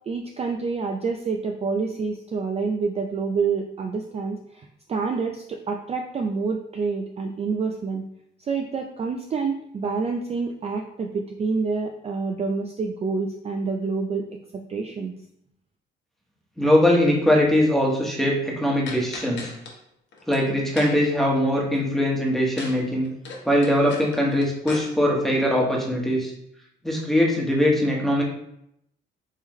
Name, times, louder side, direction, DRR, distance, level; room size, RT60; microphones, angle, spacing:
voice 1, 0.1-8.0 8.4-14.2 14.7-15.1, right 4 dB, 30° right, 3 dB, 0.4 m, -27 dB
voice 2, 16.6-19.5 20.3-23.1 23.4-26.3 26.8-28.2, left 1 dB, ahead, -2 dB, 1.1 m, -21 dB
sound 1, 18.9-19.7 20.1-20.4 20.8-21.1 22.6-22.8 23.0-24.8, left 3 dB, 65° left, 1.0 m, -38 dB
3.7 x 3.2 x 3.1 m, 0.74 s
cardioid pair, 90°, 20 cm